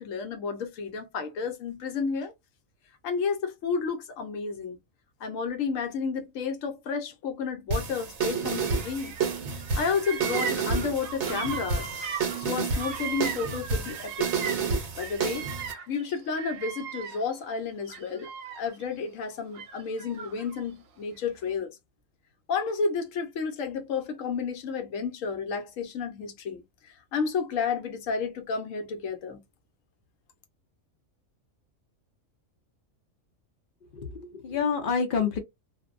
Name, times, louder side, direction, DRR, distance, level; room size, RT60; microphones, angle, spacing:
voice 1, 0.0-2.3 3.0-4.8 5.2-9.2 9.5-14.3 15.0-15.5 15.9-18.3 18.6-21.8 22.5-29.4, left 5 dB, 80° left, 1.0 m, -31 dB
sound 1, 7.7-15.7, right 5 dB, 65° right, 1.0 m, -30 dB
Bird vocalization bird call bird song, 8.6-9.4 9.6-14.7 15.0-17.4 17.8-18.8 19.5-20.6, right 7 dB, 85° right, 1.0 m, -38 dB
voice 2, 33.9-35.4, left 6 dB, 50° left, 0.7 m, -28 dB
2.5 x 2.0 x 2.3 m
omnidirectional pair, 1.4 m